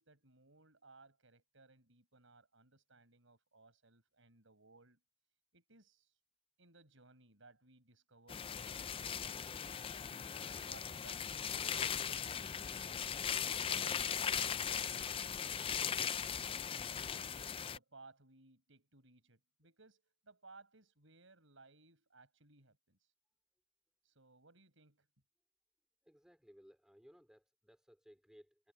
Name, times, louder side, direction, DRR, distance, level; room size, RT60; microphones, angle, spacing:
voice 1, 0.0-5.0 5.5-6.2 6.6-9.5 10.0-12.6 13.5-16.0 16.4-23.1 24.0-25.1, right 3 dB, 75° right, 6.1 m, -62 dB
sound 1, 8.3-17.8, left 8 dB, 25° left, 0.4 m, -39 dB
voice 2, 26.0-28.7, equal, 5° right, 3.0 m, -62 dB
head